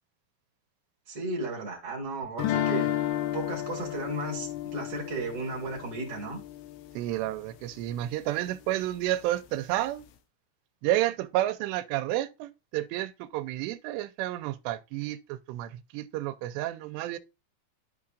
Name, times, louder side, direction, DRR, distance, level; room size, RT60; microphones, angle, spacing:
voice 1, 1.1-2.9 3.3-6.4, right 2 dB, 40° right, 2.8 m, -34 dB
sound 1, 2.4-7.3, left 12 dB, 85° left, 3.2 m, -32 dB
voice 2, 7.0-10.0 10.8-17.2, right 14 dB, 85° right, 2.8 m, -31 dB
13.5 x 4.8 x 2.5 m
omnidirectional pair, 5.0 m